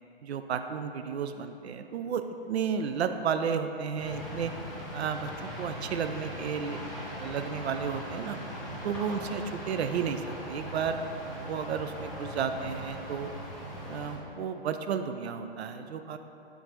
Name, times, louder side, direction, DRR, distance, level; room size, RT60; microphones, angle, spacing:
voice 1, 0.2-4.5 4.9-6.8 7.1-8.4 8.8-11.0 11.5-13.3 13.9-16.2, right 7 dB, 85° right, 8 dB, 0.5 m, -32 dB
sound 1, 4.0-14.2, equal, ahead, 0.7 m, -40 dB
9.1 x 3.8 x 3.0 m, 3.0 s
hypercardioid pair, 150°, 31 cm